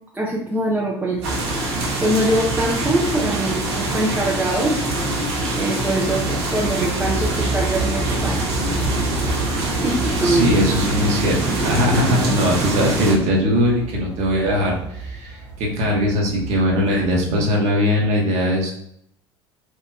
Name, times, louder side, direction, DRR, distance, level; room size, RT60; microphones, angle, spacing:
voice 1, 0.1-1.4 2.0-4.7 5.6-8.4 9.8-10.5, right 1 dB, 10° right, -5 dB, 0.9 m, -23 dB
sound 1, 1.1-17.5, right 2 dB, 80° left, 1.5 m, -31 dB
sound 2, 1.2-13.1, right 2 dB, 70° right, 1.3 m, -24 dB
voice 2, 10.2-18.7, left 1 dB, 50° right, -2 dB, 1.5 m, -20 dB
6.3 x 2.8 x 2.4 m, 0.72 s
hypercardioid pair, 70°, 14 cm